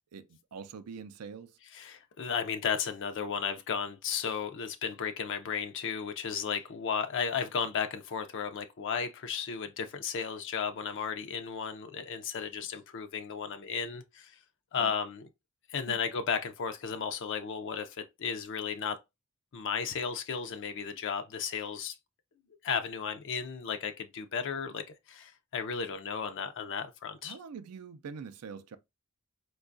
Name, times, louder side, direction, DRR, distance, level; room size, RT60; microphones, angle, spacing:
voice 1, 0.1-1.6 14.8-14.9 15.9-16.0 27.2-28.8, right 6 dB, 80° right, 0.4 m, -44 dB
voice 2, 1.7-14.4 14.7-15.2 15.7-19.0 19.5-22.0 22.6-27.4, left 6 dB, 55° left, 0.4 m, -34 dB
4.5 x 2.2 x 2.5 m
head